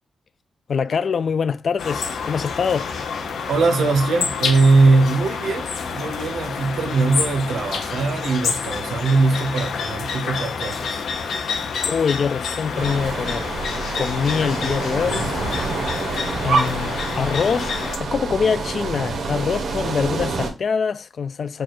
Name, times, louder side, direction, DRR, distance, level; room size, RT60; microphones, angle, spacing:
voice 1, 0.7-2.9 11.8-13.5 14.0-15.5 16.4-17.7 18.0-21.6, left 6 dB, 55° left, 0.3 m, -24 dB
sound 1, 1.8-18.0, left 5 dB, 80° left, 0.7 m, -28 dB
voice 2, 3.5-11.0 15.1-15.3, right 3 dB, 90° right, 0.8 m, -20 dB
sound 2, 12.7-20.5, right 4 dB, 70° right, 1.1 m, -27 dB
4.7 x 2.4 x 4.4 m
cardioid pair, 115°, 0 cm